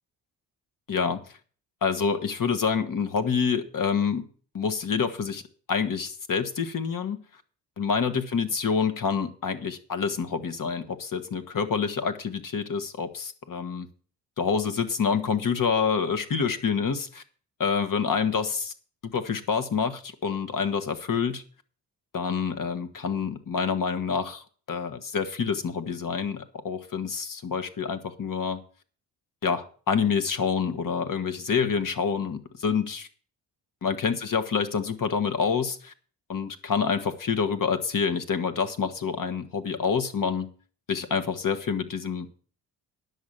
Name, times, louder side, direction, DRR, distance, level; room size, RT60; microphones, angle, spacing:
voice 1, 0.9-1.2 1.8-4.3 4.5-5.4 5.7-7.2 7.8-13.9 14.4-17.2 17.6-18.7 19.0-21.4 22.1-28.6 29.4-33.1 33.8-35.9 36.3-40.5 40.9-42.3, left 6 dB, 50° left, 8 dB, 1.8 m, -27 dB
10.5 x 6.5 x 7.6 m, 0.43 s
supercardioid pair, 55°, 42 cm